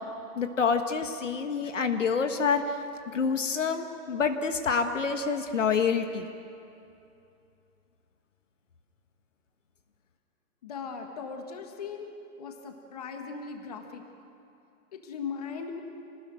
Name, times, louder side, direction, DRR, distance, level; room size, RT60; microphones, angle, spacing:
voice 1, 0.3-2.6 3.1-6.3, left 5 dB, 50° left, 7 dB, 1.5 m, -27 dB
voice 2, 10.6-12.1 12.4-14.0 14.9-15.8, left 5 dB, 25° left, 4 dB, 1.7 m, -38 dB
27.5 x 19.5 x 9.1 m, 2.6 s
hypercardioid pair, 175°, 47 cm